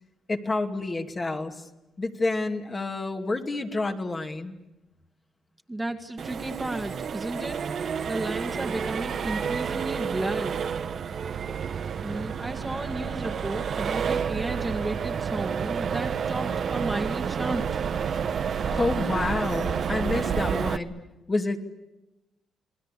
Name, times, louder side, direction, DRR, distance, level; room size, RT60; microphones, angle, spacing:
voice 1, 0.3-1.7 2.0-4.5 18.6-20.9 21.3-21.6, left 2 dB, 25° left, 3 dB, 2.4 m, -28 dB
voice 2, 5.7-7.6 8.1-10.6 12.0-17.6, right 1 dB, 15° right, 4 dB, 2.1 m, -33 dB
Accelerating revving vroom, 6.2-20.8, right 7 dB, 55° right, 1.2 m, -30 dB
28.5 x 20.5 x 8.4 m, 0.97 s
cardioid pair, 90°, 0 cm